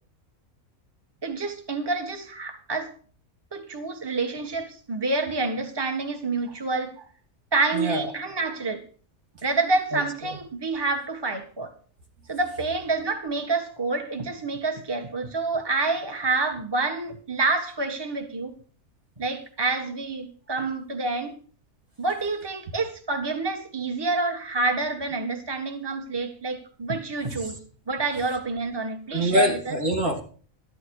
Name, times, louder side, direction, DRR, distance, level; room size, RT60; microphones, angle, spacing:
voice 1, 1.2-2.9 3.5-7.1 7.5-8.8 9.4-11.7 12.3-18.6 19.2-21.3 22.0-27.6 27.9-29.8, right 3 dB, 20° right, 1.6 m, -28 dB
voice 2, 7.7-8.1 9.9-10.0 10.3-10.4 27.4-27.5 29.1-30.2, equal, 90° right, 3.6 m, -24 dB
13.0 x 12.0 x 4.8 m
omnidirectional pair, 1.4 m